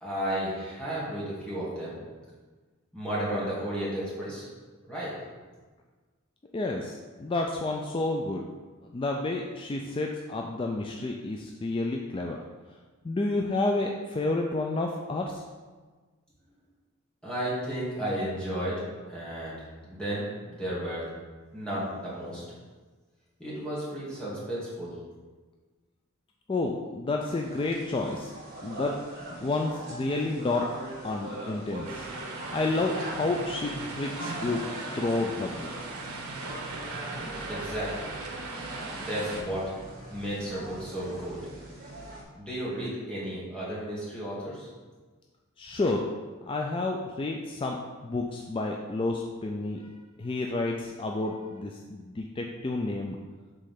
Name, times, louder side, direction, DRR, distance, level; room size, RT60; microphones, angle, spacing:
voice 1, 0.0-2.0 2.9-4.5 4.9-5.1 17.2-21.1 21.5-22.4 23.4-24.9 37.5-38.2 39.0-39.7 40.1-41.4 42.4-44.7, right 1 dB, 5° left, -8 dB, 1.8 m, -33 dB
voice 2, 6.5-8.5 8.9-12.4 13.0-15.4 26.5-28.3 28.6-28.9 29.4-30.7 31.0-32.0 32.5-34.6 34.9-36.0 45.6-46.0 46.4-49.8 50.2-53.2, left 2 dB, 25° left, 1 dB, 0.3 m, -30 dB
sound 1, 27.2-42.2, right 1 dB, 40° right, 1.6 m, -41 dB
sound 2, 31.8-39.4, right 2 dB, 85° right, 1.1 m, -39 dB
5.2 x 3.7 x 5.7 m, 1.4 s
head